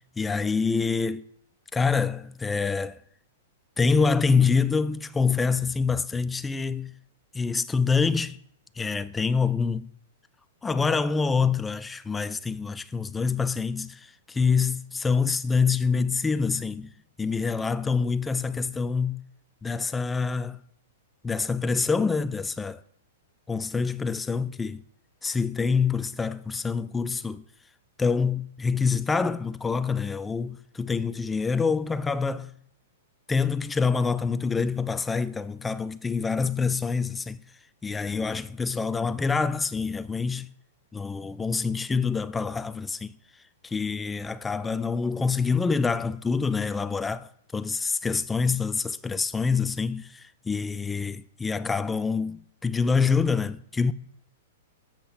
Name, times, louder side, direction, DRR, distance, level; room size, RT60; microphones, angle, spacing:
voice 1, 0.2-1.2 1.7-3.0 3.8-6.9 7.3-8.4 8.8-9.9 10.6-16.9 17.2-19.2 19.6-20.6 21.2-22.8 23.5-24.8 25.2-27.4 28.0-32.5 33.3-37.4 37.8-40.5 40.9-43.1 43.6-53.9, left 5 dB, 10° left, 0.3 m, -26 dB
7.4 x 6.1 x 4.2 m
hypercardioid pair, 145°, 0 cm